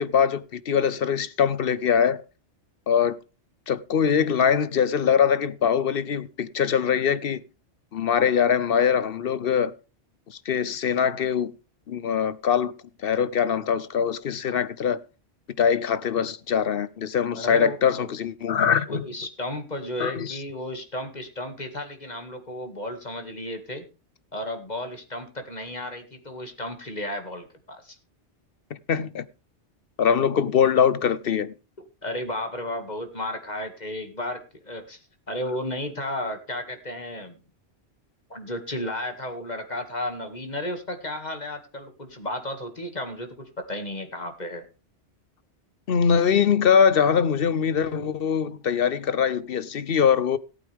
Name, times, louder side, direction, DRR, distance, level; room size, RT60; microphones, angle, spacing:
voice 1, 0.0-2.2 2.9-3.2 3.7-7.4 7.9-9.7 10.3-11.5 11.9-12.7 13.0-15.0 15.6-19.0 20.0-20.4 28.7-29.2 30.0-31.5 45.9-50.4, left 7 dB, 55° left, 1.0 m, -22 dB
voice 2, 17.3-17.8 18.9-23.8 24.3-28.0 31.8-35.0 35.3-37.4 38.3-44.6, left 1 dB, 40° left, 2.2 m, -33 dB
18.0 x 8.7 x 3.5 m
omnidirectional pair, 1.2 m